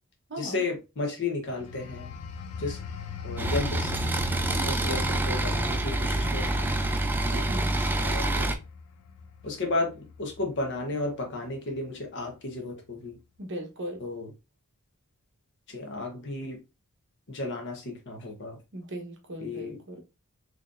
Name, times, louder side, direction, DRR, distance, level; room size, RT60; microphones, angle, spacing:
voice 1, 0.4-2.1 2.6-2.8 3.2-4.0 4.6-6.8 8.0-8.6 9.4-13.2 14.0-14.3 15.7-16.6 17.3-18.6 19.4-19.8, left 3 dB, 55° left, 1.0 m, -33 dB
sound 1, 1.5-11.8 12.3-12.5, left 6 dB, 90° left, 0.5 m, -42 dB
sound 2, 3.4-8.5, right 2 dB, 10° right, 0.3 m, -27 dB
voice 2, 4.4-4.7 7.3-7.7 13.4-14.0 18.7-20.0, right 1 dB, 55° right, 1.0 m, -38 dB
3.8 x 3.1 x 2.5 m
head